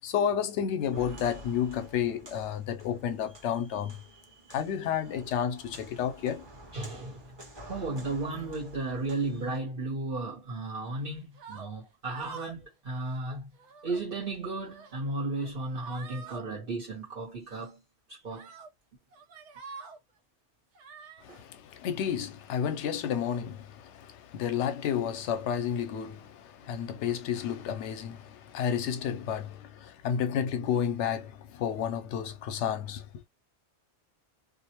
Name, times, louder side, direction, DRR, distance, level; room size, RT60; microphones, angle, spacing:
voice 1, 0.0-4.0 4.5-6.4 21.2-33.0, left 8 dB, 85° left, 0.9 m, -31 dB
Walk footsteps, 0.8-9.6, equal, 25° right, 0.9 m, -50 dB
voice 2, 6.7-7.3 7.7-13.5 13.8-17.8 18.1-18.5 21.3-21.4, right 2 dB, 55° right, 1.1 m, -34 dB
sound 1, 11.3-11.7 12.1-12.6 12.9-13.2 13.5-14.0 14.5-15.0 15.3-15.5 15.8-16.4 17.5-17.6 18.3-18.7 19.1-20.0 20.7-21.2, right 4 dB, 90° right, 1.0 m, -46 dB
2.5 x 2.0 x 2.8 m
omnidirectional pair, 1.2 m